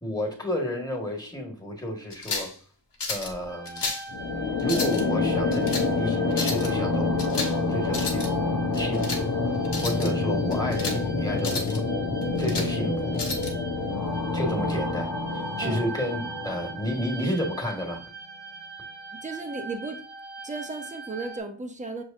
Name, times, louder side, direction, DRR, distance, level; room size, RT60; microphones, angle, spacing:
voice 1, 0.0-2.5 3.1-3.8 4.6-7.4 7.7-8.3 8.7-9.3 9.8-11.8 12.4-13.2 14.3-16.2 16.4-18.0, equal, 10° left, 1 dB, 1.6 m, -31 dB
sound 1, 2.1-2.5 3.0-3.3 3.6-4.1 4.6-5.0 5.5-5.9 6.3-6.7 7.2-7.6 7.8-8.3 8.7-9.2 9.6-10.1 10.5-11.0 11.4-11.8 12.2-12.7 13.2-13.5, left 3 dB, 65° left, 1.1 m, -32 dB
sound 2, 3.5-21.4, right 3 dB, 60° right, 1.1 m, -41 dB
sound 3, 4.1-17.2, left 3 dB, 50° left, 0.9 m, -27 dB
voice 2, 19.1-20.0 20.4-22.0, right 3 dB, 15° right, 4 dB, 0.8 m, -35 dB
6.4 x 3.1 x 2.7 m, 0.43 s
wide cardioid pair, 55°, 45 cm